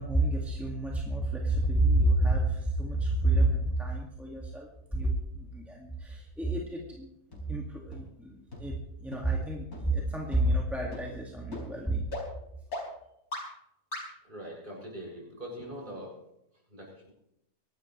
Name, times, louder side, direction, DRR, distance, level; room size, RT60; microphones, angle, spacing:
voice 1, 0.0-12.1, right 1 dB, ahead, -2 dB, 2.0 m, -29 dB
sound 1, 7.3-7.4 7.9-8.0 8.5-8.6 9.1-9.2 9.7-9.8 10.3-10.4 10.9-11.0 11.5-11.6 12.1-12.2 12.7-12.8 13.3-13.4 13.9-14.0, left 2 dB, 80° left, 5.0 m, -37 dB
voice 2, 14.2-16.1 16.7-17.1, equal, 35° right, -4 dB, 7.3 m, -42 dB
24.0 x 12.0 x 3.3 m, 0.79 s
omnidirectional pair, 1.5 m